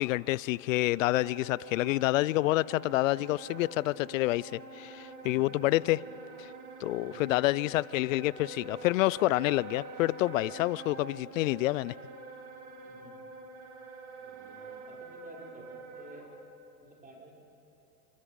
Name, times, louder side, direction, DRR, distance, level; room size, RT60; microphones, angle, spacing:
voice 1, 0.0-6.0 6.4-6.5 6.8-11.9, left 18 dB, 55° left, 0.5 m, -28 dB
Wind instrument woodwind instrument, 0.8-16.3, right 3 dB, 60° right, 3.5 m, -46 dB
voice 2, 6.9-7.2 12.8-13.3 14.2-16.2 16.8-17.3, right 2 dB, 15° right, 5.6 m, -53 dB
29.5 x 25.0 x 5.3 m
hypercardioid pair, 95°, 49 cm